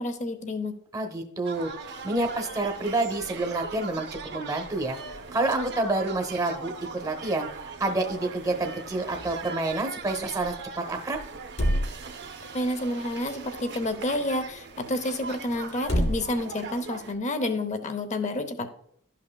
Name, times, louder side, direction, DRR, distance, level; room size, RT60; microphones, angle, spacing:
voice 1, 0.0-0.8 12.5-18.7, left 1 dB, 35° left, 10 dB, 0.7 m, -29 dB
voice 2, 0.9-1.7 2.0-11.2, right 2 dB, 15° right, 3 dB, 0.9 m, -28 dB
sound 1, 1.4-17.1, right 4 dB, 50° right, 0.7 m, -40 dB
sound 2, 1.6-16.9, equal, 55° left, 2.4 m, -37 dB
12.0 x 5.6 x 2.2 m, 0.69 s
head